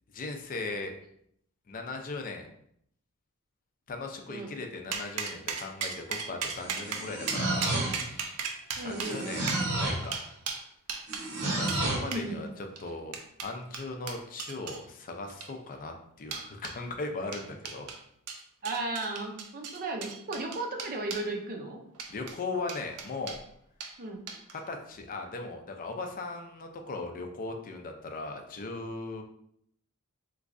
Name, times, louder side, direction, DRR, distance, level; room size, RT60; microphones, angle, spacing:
voice 1, 0.1-0.9 1.7-2.5 3.9-7.8 8.1-8.3 8.7-10.2 11.4-17.9 22.1-23.4 24.5-29.2, left 3 dB, 40° left, 4 dB, 0.4 m, -38 dB
sound 1, 4.9-11.3 11.7-11.8 12.1-12.3 12.8-14.8 15.3-15.7 16.3-16.8 17.3-18.0 18.3-21.3 21.9-22.4 22.7-23.4 23.8-23.9 24.3-24.6, right 6 dB, 85° right, 0.5 m, -37 dB
sound 2, 6.6-8.2 8.9-10.1 11.1-12.1, right 2 dB, 70° right, 0.9 m, -31 dB
voice 2, 8.8-9.4 12.1-12.5 18.6-21.8 24.0-24.2, right 2 dB, 40° right, 2 dB, 0.5 m, -35 dB
3.5 x 3.0 x 2.5 m, 0.70 s
head